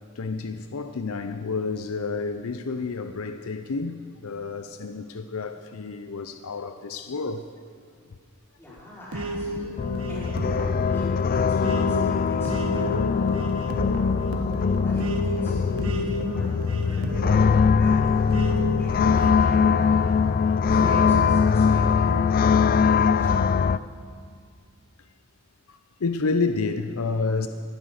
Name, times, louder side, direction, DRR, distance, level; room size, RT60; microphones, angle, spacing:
voice 1, 0.2-7.4 25.7-27.5, left 4 dB, 85° left, 0.6 m, -29 dB
voice 2, 8.6-13.4 14.3-18.3 18.8-23.7, left 1 dB, 10° left, 5.0 m, -41 dB
sound 1, 9.1-20.2 20.8-22.4, equal, 75° right, 1.3 m, -33 dB
sound 2, 9.8-23.8, left 6 dB, 45° left, 0.3 m, -22 dB
19.0 x 9.3 x 6.5 m
head